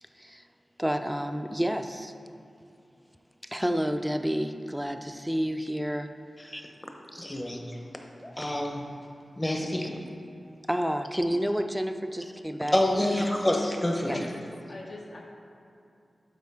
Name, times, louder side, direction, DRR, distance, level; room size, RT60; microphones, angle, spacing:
voice 1, 0.8-2.1 3.4-6.1 6.5-6.6 7.1-7.3 10.7-13.5 14.1-14.2, equal, 5° right, 7 dB, 0.4 m, -30 dB
voice 2, 7.2-7.9 8.2-8.9 9.4-9.9 12.7-14.1, left 1 dB, 15° left, 2 dB, 0.8 m, -28 dB
voice 3, 14.1-14.4 14.7-15.2, left 2 dB, 70° left, -2 dB, 1.0 m, -40 dB
11.5 x 4.9 x 3.6 m, 2.6 s
wide cardioid pair, 105°, 0 cm